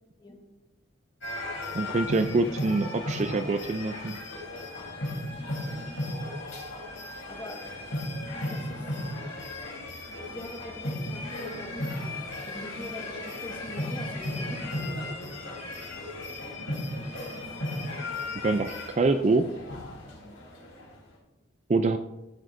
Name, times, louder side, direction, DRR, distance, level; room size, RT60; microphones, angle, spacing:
sound 1, 1.2-20.9, left 1 dB, 80° left, 3.3 m, -35 dB
voice 1, 1.7-4.2 18.4-19.5 21.7-22.0, right 3 dB, 35° right, 9 dB, 0.3 m, -25 dB
voice 2, 7.3-7.7 8.4-9.0 10.3-12.2 12.4-15.3, left 1 dB, 20° left, 1 dB, 1.4 m, -43 dB
15.0 x 7.7 x 2.6 m, 0.99 s
head